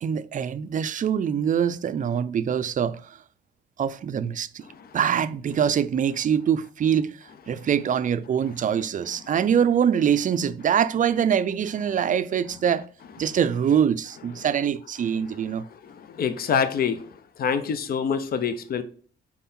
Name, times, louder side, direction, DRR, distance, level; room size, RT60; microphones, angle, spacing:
voice 1, 0.0-3.2 3.8-4.6 4.9-7.2 7.5-12.9 13.2-15.6, right 8 dB, 40° right, 0.4 m, -24 dB
voice 2, 15.8-17.1 17.4-18.8, left 7 dB, 50° left, 0.7 m, -25 dB
5.5 x 4.5 x 4.3 m
cardioid pair, 90°, 20 cm